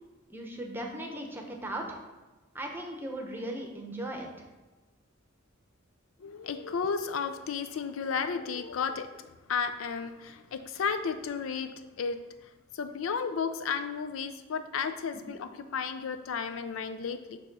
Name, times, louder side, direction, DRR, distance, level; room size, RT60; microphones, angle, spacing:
voice 1, 0.3-2.0 2.5-4.3, right 1 dB, 10° right, 1 dB, 0.9 m, -37 dB
voice 2, 6.2-9.1 9.5-11.7 12.0-12.2 12.7-17.4, left 6 dB, 80° left, 10 dB, 0.4 m, -33 dB
6.8 x 3.0 x 5.3 m, 1.2 s
head